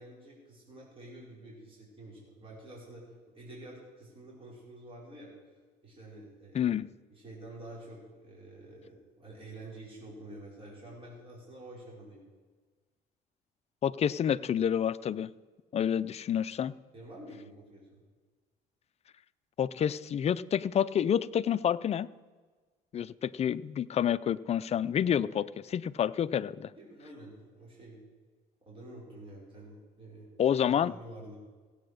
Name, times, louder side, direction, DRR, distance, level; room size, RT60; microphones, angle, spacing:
voice 1, 0.0-3.0 3.3-5.3 5.8-6.8 7.1-12.2 16.9-18.0 26.8-28.0 28.6-30.3 30.6-31.4, right 1 dB, 30° right, -4 dB, 5.2 m, -48 dB
voice 2, 6.5-6.9 13.8-15.3 15.7-16.7 19.6-22.1 22.9-26.7 30.4-30.9, left 9 dB, 40° left, 16 dB, 0.4 m, -28 dB
16.5 x 8.6 x 6.5 m, 1.4 s
cardioid pair, 110°, 17 cm